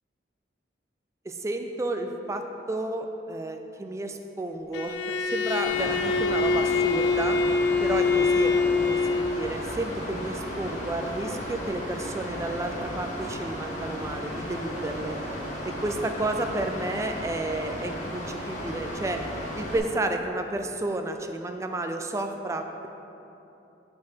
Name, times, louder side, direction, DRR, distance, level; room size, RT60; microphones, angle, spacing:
voice 1, 1.3-5.0 5.3-7.4 7.8-15.2 15.6-19.2 19.6-22.9, right 2 dB, 15° right, 5 dB, 0.3 m, -31 dB
Bowed string instrument, 4.7-9.6, left 4 dB, 80° left, 0.3 m, -24 dB
Mechanical fan, 5.6-19.8, equal, 45° left, 1.4 m, -35 dB
7.3 x 4.7 x 4.5 m, 2.9 s
head